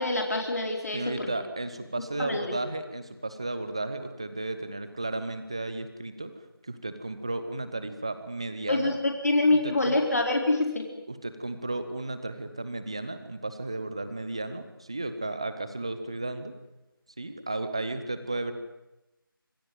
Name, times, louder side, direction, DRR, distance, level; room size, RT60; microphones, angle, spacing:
voice 1, 0.0-1.3 2.2-2.5 8.7-10.8, left 2 dB, 40° left, 2 dB, 4.1 m, -25 dB
voice 2, 0.9-6.3 6.6-9.0 9.6-10.0 11.1-16.5 17.2-18.5, right 2 dB, 15° right, 11 dB, 1.0 m, -34 dB
26.0 x 19.0 x 9.3 m, 0.95 s
figure-of-eight pair, 175°, 12 cm